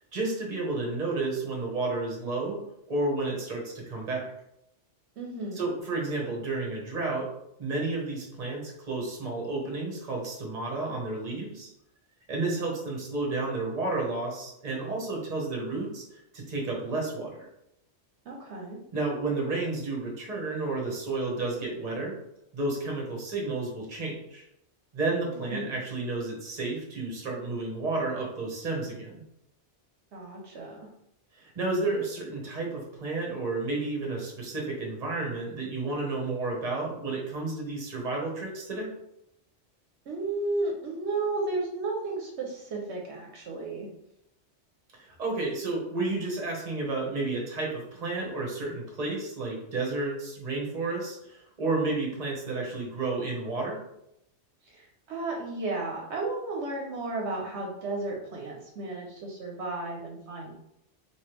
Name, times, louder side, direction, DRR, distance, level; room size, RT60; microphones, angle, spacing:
voice 1, 0.1-2.6 2.9-4.2 5.5-7.3 7.6-11.7 12.3-17.5 18.9-22.2 22.5-24.4 24.9-29.2 31.4-38.9 45.0-53.8, right 3 dB, 40° right, -1 dB, 1.0 m, -31 dB
voice 2, 5.2-5.6 18.3-18.8 25.3-25.7 30.1-30.9 40.1-43.9 54.6-60.5, right 2 dB, 75° right, -1 dB, 0.9 m, -33 dB
3.2 x 2.9 x 3.0 m, 0.80 s
omnidirectional pair, 1.2 m